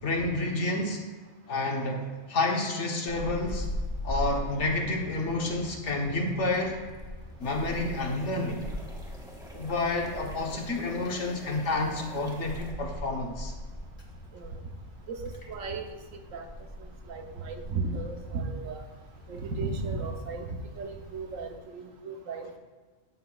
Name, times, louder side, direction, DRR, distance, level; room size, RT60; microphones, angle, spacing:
voice 1, 0.0-1.0 1.5-3.7 4.0-6.8 7.4-8.6 9.5-13.5, left 2 dB, 65° left, 1 dB, 1.4 m, -29 dB
Wind, 3.1-21.6, left 1 dB, 25° left, 1.2 m, -41 dB
sound 1, 7.4-12.7, equal, 5° right, 1.5 m, -48 dB
voice 2, 15.1-16.0 16.3-16.5 16.8-18.8 19.3-20.5 20.8-22.6, right 4 dB, 90° right, 4 dB, 1.3 m, -35 dB
12.0 x 7.8 x 2.4 m, 1.4 s
omnidirectional pair, 1.3 m